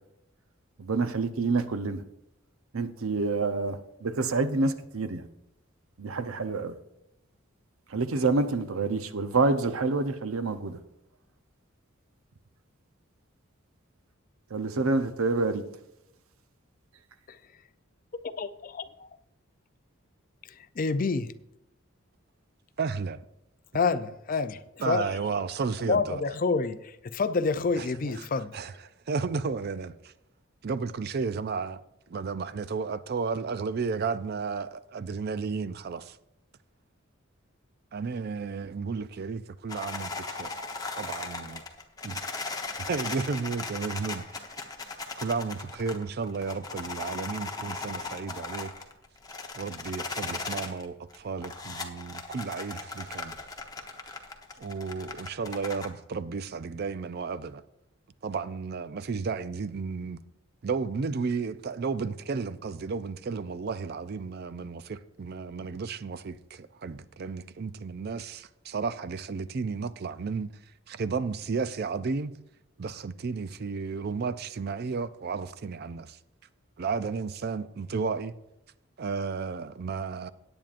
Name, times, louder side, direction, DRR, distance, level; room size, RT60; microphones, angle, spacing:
voice 1, 0.8-2.0 2.7-5.3 6.0-6.8 7.9-10.8 14.5-15.6, right 3 dB, 85° right, 0.7 m, -27 dB
voice 2, 20.6-21.3 23.7-24.6 24.9-25.1 25.8-28.6, left 4 dB, 40° left, 0.5 m, -27 dB
voice 3, 22.8-23.2 24.8-26.2 27.8-28.3 28.5-28.7 29.1-30.1 30.6-31.8 32.1-36.2 37.9-40.5 41.0-41.6 42.0-42.3 42.8-44.4 45.2-48.7 49.5-53.4 54.6-57.6 58.2-60.2 60.6-70.5 70.9-72.3 72.8-76.2 76.8-78.3 79.0-80.3, right 5 dB, 50° right, 0.4 m, -33 dB
sound 1, 39.7-50.8 51.1-55.9, left 3 dB, 20° left, 0.9 m, -37 dB
18.0 x 8.8 x 2.5 m
head